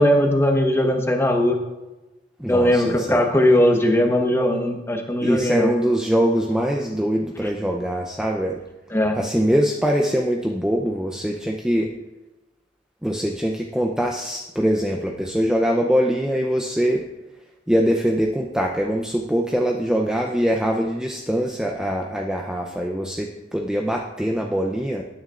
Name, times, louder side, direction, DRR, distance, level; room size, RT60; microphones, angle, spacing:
voice 1, 0.0-1.6 2.5-5.7 8.9-9.2, left 1 dB, 15° left, 3 dB, 1.1 m, -19 dB
voice 2, 2.4-3.3 5.2-8.6 9.2-11.9 13.0-17.0 17.7-25.0, equal, 5° right, 0 dB, 0.6 m, -23 dB
19.5 x 9.6 x 2.5 m, 1.1 s
head